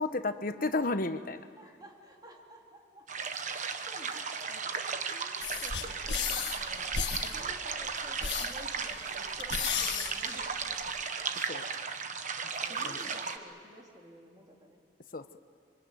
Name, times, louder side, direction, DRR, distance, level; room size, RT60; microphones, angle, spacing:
voice 1, 0.0-1.4 11.5-11.7 12.8-13.0 15.1-15.4, left 3 dB, 50° left, 10 dB, 1.1 m, -32 dB
voice 2, 1.5-3.3 3.5-10.9 12.7-14.8, equal, 25° right, 0 dB, 3.5 m, -53 dB
sound 1, 3.1-13.4, right 5 dB, 45° right, 1.2 m, -36 dB
sound 2, 5.4-11.0, left 7 dB, 80° left, 1.6 m, -35 dB
25.5 x 24.5 x 9.3 m, 2.1 s
head